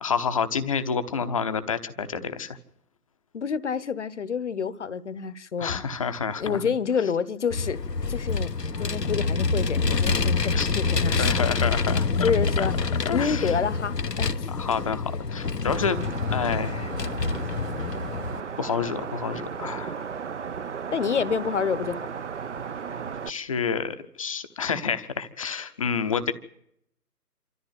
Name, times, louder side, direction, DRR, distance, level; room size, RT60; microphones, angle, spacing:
voice 1, 0.0-2.6 5.6-6.6 10.5-10.7 11.2-12.1 12.6-12.7 13.1-13.5 14.5-16.0 16.3-16.9 18.6-20.1 23.3-26.3, left 6 dB, 20° left, 0.9 m, -28 dB
voice 2, 3.3-6.1 6.4-7.8 8.1-11.5 12.2-12.7 13.1-14.5 20.9-22.1, left 6 dB, 45° left, 1.1 m, -28 dB
Vehicle, 7.5-18.4, left 4 dB, 85° left, 1.1 m, -26 dB
sound 1, 11.1-13.4 15.3-17.6, right 1 dB, 75° right, 6.3 m, -48 dB
sound 2, 15.8-23.3, right 6 dB, 45° right, 1.0 m, -35 dB
27.0 x 14.0 x 7.7 m
figure-of-eight pair, 140°, 48 cm